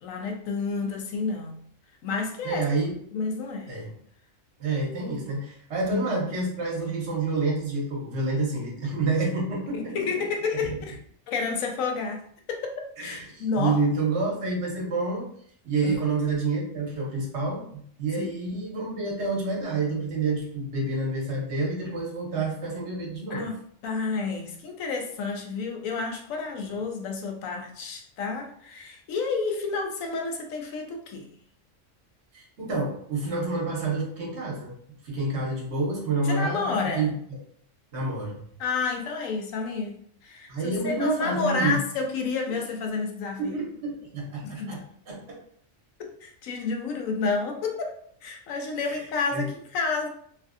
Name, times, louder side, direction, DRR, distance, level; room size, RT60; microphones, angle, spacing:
voice 1, 0.0-1.6 2.0-2.6 3.1-3.7 5.9-6.1 9.7-11.0 11.3-12.2 12.5-13.8 15.8-16.0 18.2-18.3 23.3-23.6 23.8-31.3 36.2-37.1 38.6-43.6 44.4-44.8 46.0-47.9 48.2-50.1, left 4 dB, 90° left, 3 dB, 1.0 m, -30 dB
voice 2, 2.4-2.9 3.7-3.9 4.6-9.9 13.0-15.3 15.6-23.5 32.3-34.7 35.0-37.1 37.9-38.4 40.5-41.8 43.4-44.8 45.1-45.2 48.8-49.0 49.3-49.5, right 3 dB, 60° right, -2 dB, 1.2 m, -28 dB
3.1 x 2.5 x 2.5 m, 0.62 s
omnidirectional pair, 1.3 m